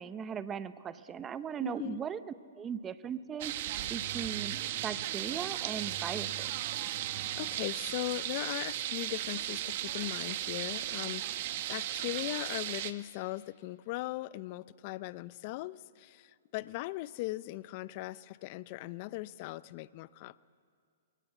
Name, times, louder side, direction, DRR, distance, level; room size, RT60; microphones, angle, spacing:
voice 1, 0.0-3.5 3.9-6.5, right 7 dB, 20° right, 14 dB, 0.8 m, -38 dB
voice 2, 1.6-2.0 7.4-20.4, left 18 dB, 45° left, 19 dB, 0.6 m, -39 dB
sound 1, 3.4-12.9, right 13 dB, 50° right, 1.0 m, -36 dB
22.5 x 17.5 x 8.3 m, 2.2 s
hypercardioid pair, 130°, 0 cm